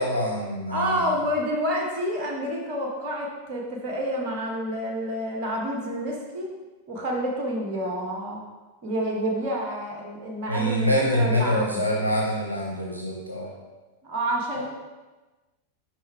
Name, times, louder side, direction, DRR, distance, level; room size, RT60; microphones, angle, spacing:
voice 1, 0.0-1.1 10.5-13.5 14.6-14.7, equal, 90° right, -1 dB, 0.8 m, -25 dB
voice 2, 0.7-6.5 6.9-8.4 8.8-12.0 14.0-14.6, equal, 45° right, -1 dB, 1.3 m, -28 dB
6.2 x 4.9 x 3.4 m, 1.2 s
figure-of-eight pair, 90°, 0 cm